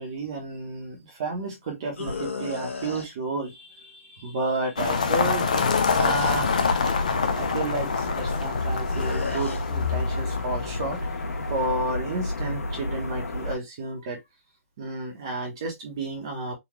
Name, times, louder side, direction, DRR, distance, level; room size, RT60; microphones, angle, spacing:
voice 1, 0.0-5.5 6.0-6.5 7.3-11.2 11.5-14.2 14.8-16.5, right 2 dB, 20° right, 0.9 m, -31 dB
sound 1, 2.0-3.1 5.5-6.5 8.9-9.6, left 4 dB, 55° left, 1.2 m, -33 dB
sound 2, 4.8-11.7, left 5 dB, 30° left, 0.4 m, -26 dB
sound 3, 6.2-13.6, left 2 dB, 75° left, 1.1 m, -31 dB
4.0 x 2.3 x 3.0 m
hypercardioid pair, 175°, 8 cm